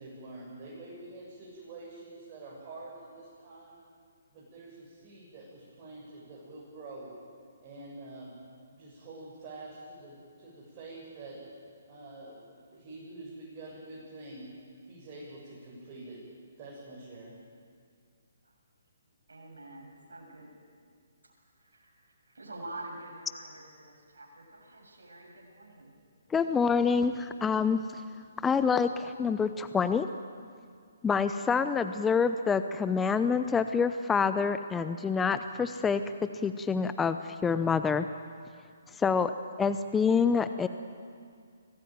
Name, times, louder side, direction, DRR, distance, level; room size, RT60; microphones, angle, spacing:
voice 1, 0.0-3.8 4.3-7.1 7.6-8.4 8.7-11.4 11.9-14.5 14.9-16.2 16.6-17.3, right 2 dB, 30° right, -6 dB, 7.9 m, -46 dB
voice 2, 19.3-20.5 21.6-25.9, right 2 dB, 70° right, 0 dB, 7.4 m, -47 dB
voice 3, 26.3-28.0 28.4-30.1 31.0-36.0 36.4-38.1 38.9-39.3 39.6-40.7, left 5 dB, 10° left, 10 dB, 0.7 m, -27 dB
25.0 x 19.0 x 9.3 m, 2.2 s
figure-of-eight pair, 135°, 0 cm